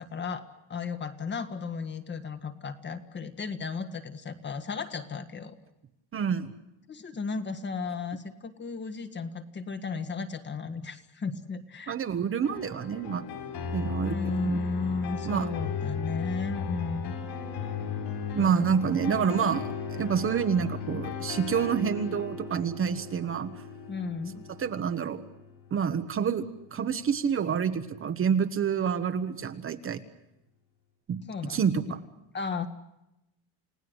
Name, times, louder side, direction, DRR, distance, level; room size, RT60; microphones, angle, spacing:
voice 1, 0.0-5.6 6.9-12.0 14.0-17.1 18.4-18.7 23.9-24.4 31.3-31.6 32.3-32.7, left 4 dB, 25° left, 9 dB, 1.5 m, -34 dB
voice 2, 6.1-6.5 11.9-13.2 13.7-14.6 15.3-15.5 18.3-23.5 24.6-25.2 25.7-30.0 31.1-31.2 31.5-31.7, right 7 dB, 30° right, 9 dB, 1.2 m, -28 dB
sound 1, 12.4-26.3, left 5 dB, 60° left, 6.2 m, -36 dB
30.0 x 18.0 x 8.0 m, 0.89 s
cardioid pair, 175°, 43 cm